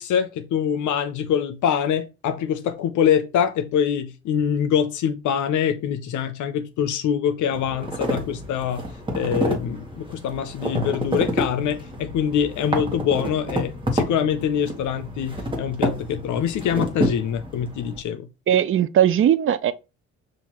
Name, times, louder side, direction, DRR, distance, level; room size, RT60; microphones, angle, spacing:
voice 1, 0.0-8.9 9.1-18.3, left 8 dB, 75° left, 0.6 m, -24 dB
sound 1, 7.5-18.0, equal, 15° right, 1.1 m, -29 dB
voice 2, 18.5-19.7, right 10 dB, 45° right, 0.4 m, -18 dB
5.6 x 2.5 x 2.9 m
cardioid pair, 90°, 30 cm